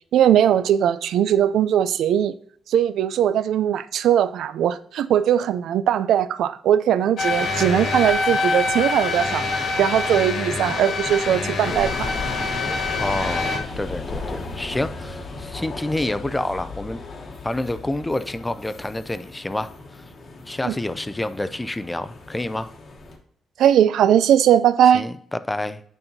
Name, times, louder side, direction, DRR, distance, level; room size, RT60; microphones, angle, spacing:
voice 1, 0.1-2.3 2.7-9.4 9.8-12.1 20.6-20.8 23.6-25.1, right 10 dB, 85° right, 0.4 m, -19 dB
sound 1, 7.2-13.6, left 3 dB, 65° left, 1.5 m, -25 dB
sound 2, 11.6-23.2, left 3 dB, 40° left, 1.1 m, -36 dB
voice 2, 13.0-17.0 17.4-19.7 20.5-22.7 24.9-25.8, left 1 dB, 10° left, 0.3 m, -28 dB
9.3 x 5.3 x 2.7 m
wide cardioid pair, 175°, 0 cm